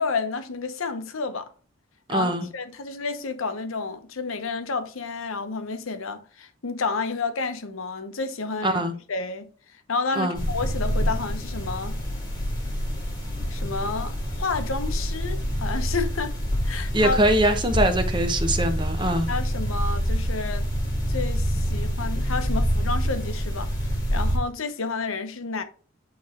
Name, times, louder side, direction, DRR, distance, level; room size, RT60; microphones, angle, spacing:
voice 1, 0.0-1.5 2.1-8.8 9.1-9.5 9.9-12.0 13.5-16.4 16.6-17.2 19.3-20.7 21.1-25.6, left 4 dB, 75° left, 0.8 m, -30 dB
voice 2, 2.1-2.5 8.6-8.9 10.2-10.4 16.9-19.3, right 1 dB, 20° right, 0.7 m, -22 dB
sound 1, 10.3-24.4, equal, 20° left, 2.0 m, -26 dB
8.5 x 3.1 x 4.2 m
head